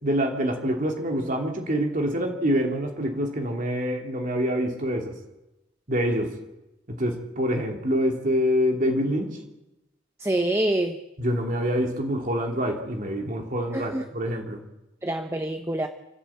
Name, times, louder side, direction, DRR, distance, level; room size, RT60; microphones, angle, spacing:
voice 1, 0.0-5.1 5.9-6.3 6.9-9.4 11.2-14.6, equal, 45° right, 2 dB, 2.8 m, -26 dB
voice 2, 10.2-11.0 13.7-14.0 15.0-15.9, right 1 dB, 15° right, 7 dB, 0.9 m, -26 dB
28.0 x 12.5 x 8.5 m, 0.97 s
head